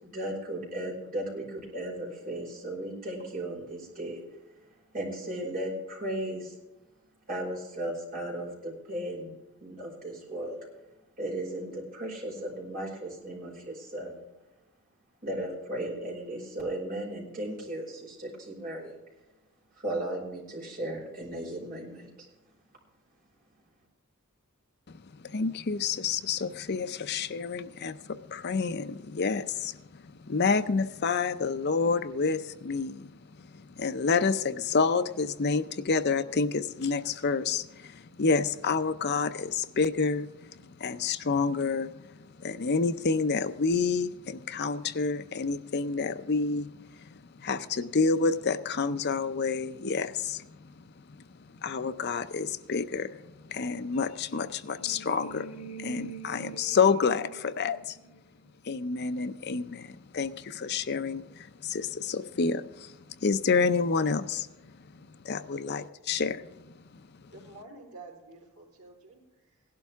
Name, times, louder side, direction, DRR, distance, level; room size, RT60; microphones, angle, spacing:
voice 1, 0.0-4.2 4.6-6.6 7.3-9.3 9.6-10.6 11.2-14.2 15.2-19.0 19.8-22.3, right 1 dB, 40° right, -3 dB, 5.0 m, -36 dB
voice 2, 24.9-33.1 33.4-51.2 51.6-58.0 58.7-64.5 65.2-66.7, left 4 dB, 45° left, 11 dB, 0.5 m, -29 dB
sound 1, 53.9-58.7, right 4 dB, 85° left, 2.0 m, -46 dB
voice 3, 67.3-69.6, right 3 dB, 75° right, -9 dB, 3.8 m, -49 dB
17.0 x 11.5 x 3.5 m, 1.1 s
head